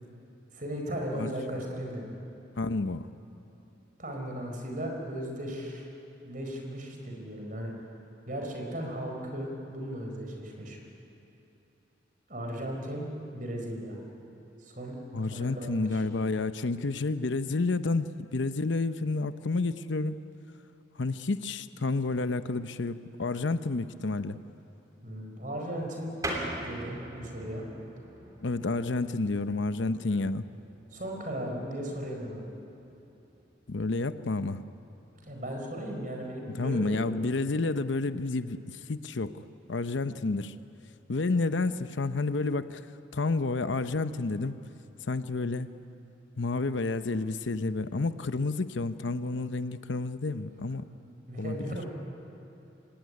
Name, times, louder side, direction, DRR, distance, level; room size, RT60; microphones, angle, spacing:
voice 1, 0.5-2.1 4.0-5.8 6.2-7.7 8.3-10.8 12.3-13.1 13.3-14.0 14.6-15.0 15.2-16.0 25.0-26.1 26.6-27.6 30.9-32.5 35.2-37.2 51.0-51.9, right 1 dB, 45° right, 1 dB, 4.8 m, -36 dB
voice 2, 2.6-3.1 15.1-20.2 21.0-24.4 28.4-30.5 33.7-34.6 36.5-39.4 39.7-40.5 41.1-42.8 43.1-44.6 45.0-45.7 46.4-50.8 51.4-51.6, left 3 dB, 75° left, 12 dB, 0.8 m, -30 dB
sound 1, 26.2-36.4, right 1 dB, 20° right, 3.1 m, -44 dB
25.0 x 17.5 x 9.9 m, 2.9 s
head